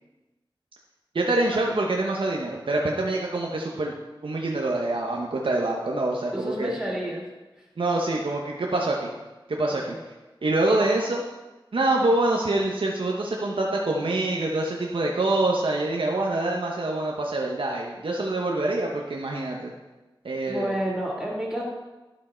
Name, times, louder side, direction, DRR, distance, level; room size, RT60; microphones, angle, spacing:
voice 1, 1.1-3.9 4.2-6.7 7.8-9.1 9.5-10.0 10.4-11.2 11.7-19.7 20.2-20.7, right 2 dB, 80° right, -1 dB, 0.9 m, -25 dB
voice 2, 6.3-7.2 7.6-7.7 9.7-10.0 20.4-21.6, right 1 dB, ahead, -8 dB, 2.5 m, -30 dB
11.5 x 6.3 x 4.4 m, 1.1 s
wide cardioid pair, 70°, 9 cm